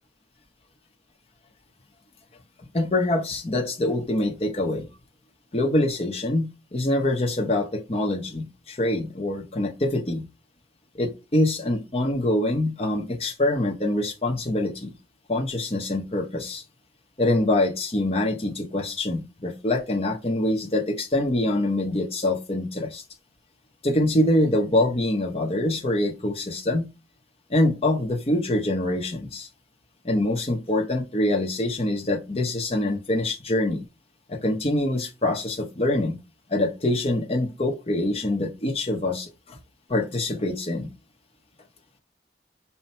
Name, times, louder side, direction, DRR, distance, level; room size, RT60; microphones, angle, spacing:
voice 1, 2.7-4.9 5.5-10.2 11.0-14.9 15.3-16.6 17.2-23.0 23.8-26.9 27.5-29.5 30.0-33.8 34.3-36.2 36.5-39.6 39.9-40.9, left 1 dB, 35° left, 0.7 m, -25 dB
5.7 x 2.1 x 4.3 m
head